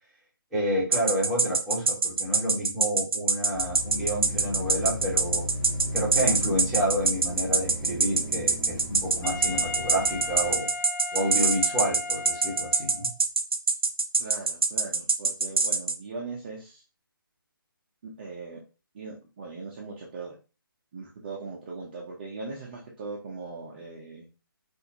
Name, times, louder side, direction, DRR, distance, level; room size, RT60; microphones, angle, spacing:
voice 1, 0.5-5.4 5.9-10.7 11.1-13.1, equal, 5° right, -10 dB, 1.2 m, -29 dB
sound 1, 0.9-15.9, right 4 dB, 80° right, 0.7 m, -23 dB
sound 2, 3.5-10.6, left 1 dB, 25° left, 1.4 m, -36 dB
Wind instrument woodwind instrument, 9.2-13.2, left 4 dB, 50° left, 0.5 m, -36 dB
voice 2, 14.2-16.8 18.0-18.6 18.9-20.4 20.9-24.2, right 4 dB, 25° right, -3 dB, 0.6 m, -39 dB
4.0 x 2.5 x 2.8 m, 0.33 s
hypercardioid pair, 165°, 12 cm